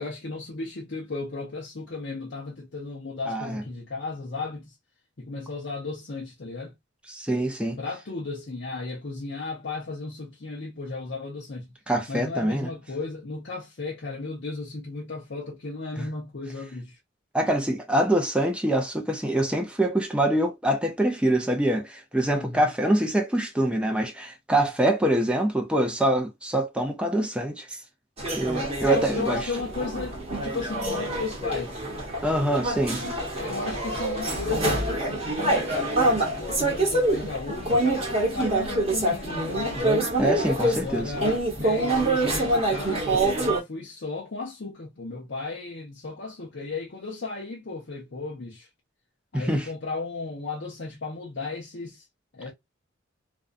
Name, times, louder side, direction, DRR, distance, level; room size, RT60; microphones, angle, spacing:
voice 1, 0.0-4.7 5.2-6.7 7.8-11.7 12.1-17.0 22.3-22.7 28.8-31.8 33.2-39.8 40.6-48.7 49.3-52.0 52.3-52.5, left 3 dB, 55° left, 0.6 m, -35 dB
voice 2, 3.3-3.6 7.1-7.8 11.9-12.7 16.0-16.1 17.3-27.8 28.3-29.5 32.2-33.0 40.2-41.1 49.3-49.7, right 1 dB, 5° right, 0.4 m, -25 dB
sound 1, 28.2-43.6, right 1 dB, 30° right, 0.9 m, -26 dB
2.6 x 2.2 x 2.4 m
head